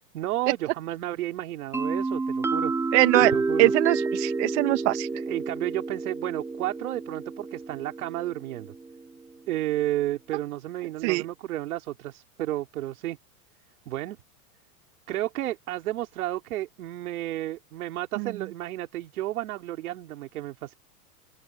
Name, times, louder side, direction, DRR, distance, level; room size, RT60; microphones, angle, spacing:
voice 1, 0.1-2.7 3.2-3.7 5.1-8.7 9.5-13.2 13.9-14.2 15.1-20.8, right 14 dB, 75° right, 4.3 m, -32 dB
sound 1, 1.7-9.4, right 3 dB, 5° right, 1.1 m, -30 dB
voice 2, 2.9-3.3 3.6-5.1 11.0-11.2 18.2-18.3, right 22 dB, 50° right, 2.5 m, -22 dB
open air
supercardioid pair, 155°, 43 cm